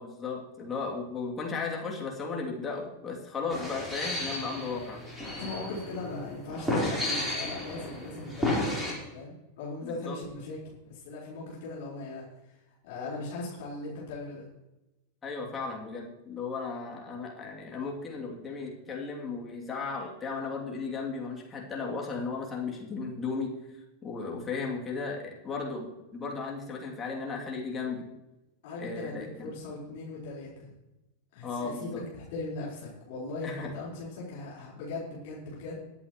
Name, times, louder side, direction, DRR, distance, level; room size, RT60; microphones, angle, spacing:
voice 1, 0.0-5.0 9.8-10.2 15.2-23.5 24.0-28.1 28.8-29.5 31.4-32.0 33.4-33.7, left 4 dB, 20° left, -1 dB, 2.8 m, -35 dB
sound 1, 3.5-8.9, left 1 dB, 5° right, 4.2 m, -33 dB
voice 2, 5.4-8.8 9.1-12.6 12.8-14.5 28.6-30.7 31.3-35.8, left 3 dB, 50° left, -7 dB, 4.4 m, -39 dB
21.5 x 8.4 x 3.1 m, 0.99 s
figure-of-eight pair, 90°, 0 cm